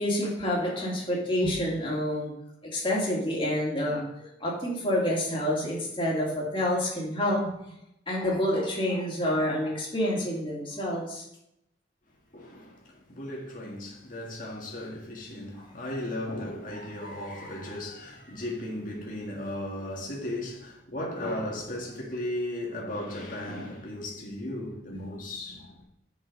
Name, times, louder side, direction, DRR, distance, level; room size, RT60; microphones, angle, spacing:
voice 1, 0.0-2.3 2.7-7.5 8.1-11.2 15.5-15.7 24.9-25.0, left 1 dB, 30° left, 2.3 m, -28 dB
voice 2, 12.3-25.8, left 1 dB, 45° left, 1.8 m, -36 dB
8.1 x 5.5 x 5.2 m
head